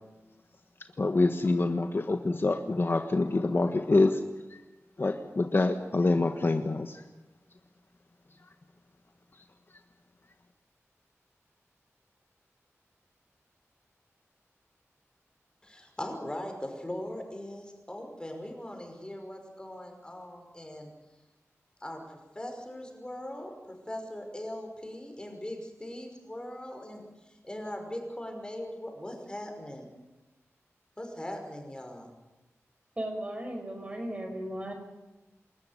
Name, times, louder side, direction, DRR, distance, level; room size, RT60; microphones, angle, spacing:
voice 1, 1.0-4.2 4.5-4.6 5.0-7.0, left 2 dB, 45° left, 7 dB, 1.4 m, -26 dB
voice 2, 15.6-20.9 21.8-29.9 31.0-32.1, left 1 dB, 15° left, 4 dB, 5.6 m, -40 dB
voice 3, 33.0-34.7, right 1 dB, 25° right, 3 dB, 6.0 m, -36 dB
27.5 x 14.0 x 9.8 m, 1.1 s
wide cardioid pair, 95°, 5 cm